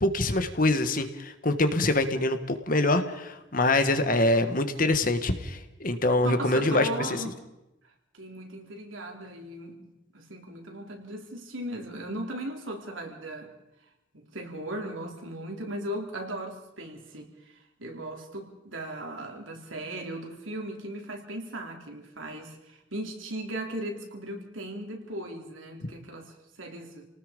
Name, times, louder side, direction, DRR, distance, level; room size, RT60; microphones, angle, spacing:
voice 1, 0.0-6.9, left 2 dB, 45° left, 9 dB, 1.6 m, -25 dB
voice 2, 6.2-7.4 8.1-13.5 14.1-27.1, right 1 dB, 80° right, 2 dB, 3.9 m, -37 dB
29.0 x 19.0 x 5.3 m, 0.94 s
head